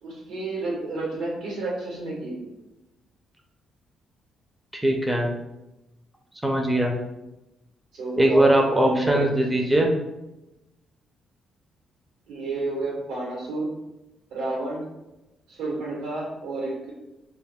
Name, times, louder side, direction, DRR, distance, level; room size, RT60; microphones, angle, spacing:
voice 1, 0.0-2.5 7.9-9.3 12.3-13.7 14.3-14.9 15.5-16.9, right 2 dB, 85° right, -4 dB, 1.0 m, -30 dB
voice 2, 4.7-5.3 6.4-6.9 8.2-9.9, right 1 dB, 10° right, 1 dB, 0.4 m, -21 dB
2.2 x 2.1 x 3.5 m, 0.96 s
cardioid pair, 90°, 0 cm